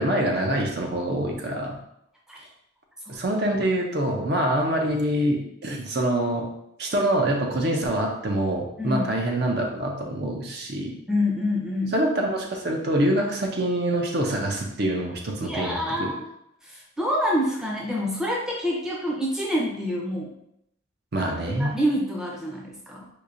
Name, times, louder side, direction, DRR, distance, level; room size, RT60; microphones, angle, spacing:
voice 1, 0.0-1.8 3.1-6.5 6.8-11.0 11.9-16.1 21.1-21.8, right 1 dB, 55° right, 1 dB, 0.6 m, -25 dB
voice 2, 8.8-9.1 11.1-12.0 15.4-16.3 16.6-20.3 21.5-23.1, equal, 5° right, -4 dB, 0.6 m, -27 dB
4.6 x 2.7 x 2.5 m, 0.77 s
head